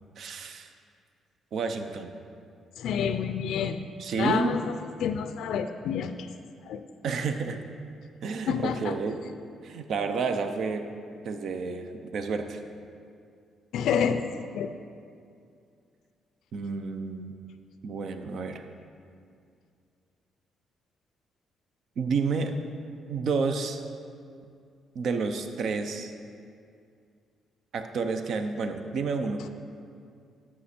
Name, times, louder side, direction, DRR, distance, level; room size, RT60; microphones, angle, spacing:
voice 1, 0.2-0.7 1.5-2.1 4.0-4.5 7.0-7.6 8.2-9.2 9.6-10.9 11.2-12.6 16.5-17.3 17.8-18.6 22.0-22.5 23.1-23.8 24.9-26.1 27.7-29.5, right 4 dB, 65° right, 7 dB, 0.7 m, -30 dB
voice 2, 2.8-3.9 4.2-4.7 5.0-6.3 6.7-6.8 8.5-9.0 13.7-14.7 29.4-29.5, left 7 dB, 80° left, 9 dB, 0.4 m, -28 dB
11.0 x 7.2 x 4.3 m, 2.4 s
cardioid pair, 90°, 0 cm